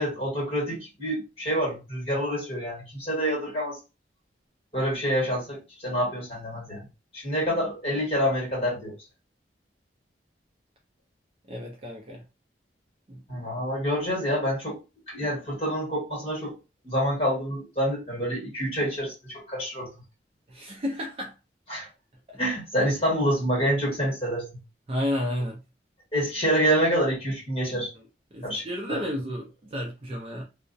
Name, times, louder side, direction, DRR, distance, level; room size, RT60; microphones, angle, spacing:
voice 1, 0.0-3.8 4.7-6.8 7.1-8.9 13.3-14.8 15.1-16.5 16.8-19.9 21.7-21.9 22.4-24.6 26.1-27.9 28.4-28.6 28.9-29.0, equal, 35° left, 1.3 m, -27 dB
voice 2, 11.5-12.2 13.1-13.2 20.5-21.3 22.3-22.4 24.9-25.6 27.9-28.1 28.3-30.4, left 1 dB, 30° right, 0.4 m, -32 dB
2.3 x 2.0 x 2.5 m
head